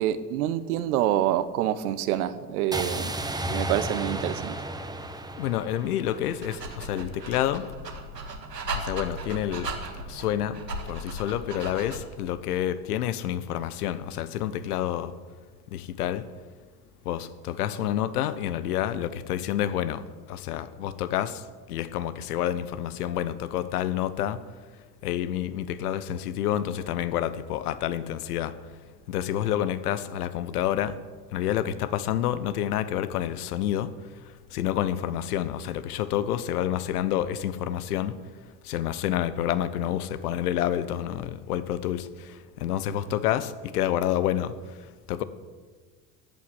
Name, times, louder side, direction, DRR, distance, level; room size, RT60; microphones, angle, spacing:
voice 1, 0.0-3.2 3.5-4.5, right 12 dB, 65° right, 14 dB, 1.2 m, -27 dB
sound 1, 2.7-6.8, right 1 dB, 10° right, 1.3 m, -33 dB
voice 2, 5.4-7.7 8.7-9.7 10.1-15.1 15.7-16.2 17.0-20.0 20.3-21.4 21.7-24.4 25.0-28.5 29.1-31.0 31.3-33.9 34.5-38.2 38.6-44.5 45.1-45.2, left 11 dB, 70° left, 14 dB, 1.1 m, -28 dB
Dog, 6.1-12.2, right 2 dB, 85° right, 1.9 m, -37 dB
15.0 x 8.6 x 9.9 m, 1.5 s
figure-of-eight pair, 70°, 48 cm